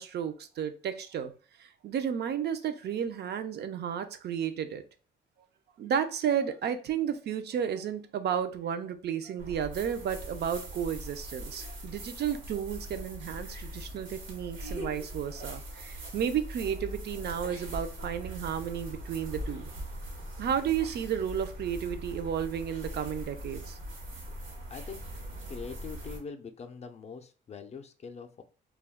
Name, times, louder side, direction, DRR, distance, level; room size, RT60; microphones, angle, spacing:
voice 1, 0.0-1.3 1.6-4.8 5.8-19.7 20.4-23.8, right 8 dB, 55° right, 9 dB, 0.4 m, -32 dB
sound 1, 9.4-26.2, right 1 dB, 80° right, 1.0 m, -41 dB
voice 2, 24.7-25.1 25.5-28.4, left 5 dB, 35° left, 7 dB, 0.4 m, -43 dB
2.3 x 2.2 x 3.4 m, 0.37 s
cardioid pair, 90°, 20 cm